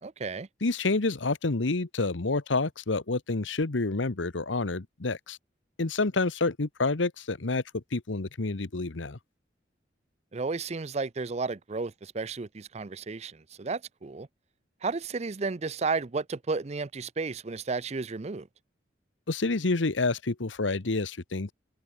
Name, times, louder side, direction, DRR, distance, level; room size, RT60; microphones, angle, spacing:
voice 1, 0.0-0.5 10.3-14.3 14.8-18.5, right 4 dB, 35° right, 0.5 m, -33 dB
voice 2, 0.6-5.4 5.8-9.2 19.3-21.5, left 3 dB, 85° left, 1.1 m, -28 dB
head